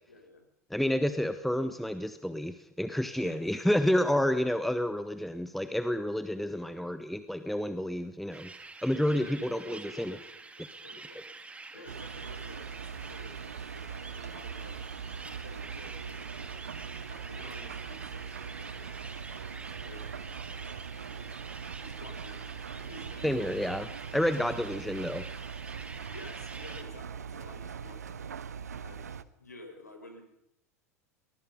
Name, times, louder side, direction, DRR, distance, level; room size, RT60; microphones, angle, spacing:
voice 1, 0.1-0.5 3.2-3.9 6.5-6.8 9.1-11.3 11.7-14.8 15.4-16.6 17.1-21.4 21.8-24.8 26.1-28.2 28.8-30.2, left 2 dB, 85° left, 6 dB, 5.5 m, -51 dB
voice 2, 0.7-8.5 8.8-10.2 23.2-23.8 24.1-25.2, left 1 dB, ahead, 10 dB, 1.3 m, -29 dB
sound 1, 8.3-26.8, right 3 dB, 15° right, 2.8 m, -47 dB
Engine, 11.9-29.2, right 6 dB, 75° right, 1.1 m, -41 dB
23.5 x 21.5 x 5.4 m, 0.80 s
figure-of-eight pair, 85°, 9 cm